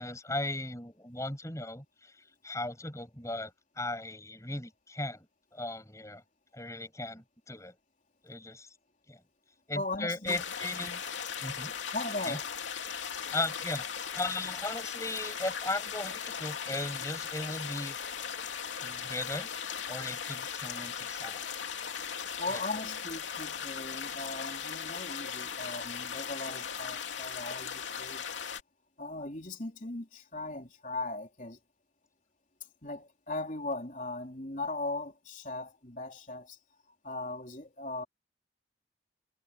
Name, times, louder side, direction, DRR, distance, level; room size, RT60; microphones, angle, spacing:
voice 1, 0.0-3.5 3.8-5.3 5.5-6.2 6.5-7.7 8.2-8.7 9.1-9.2 9.7-10.9 11.4-11.7 12.2-12.4 13.3-18.0 18.8-19.5 19.9-21.5, left 2 dB, 15° left, 6.8 m, -37 dB
voice 2, 9.7-10.4 10.8-11.0 11.9-12.5 22.4-28.2 29.0-31.6 32.8-36.6 37.0-38.0, left 2 dB, 45° left, 3.7 m, -38 dB
sound 1, 10.3-28.6, left 7 dB, 90° left, 2.9 m, -38 dB
head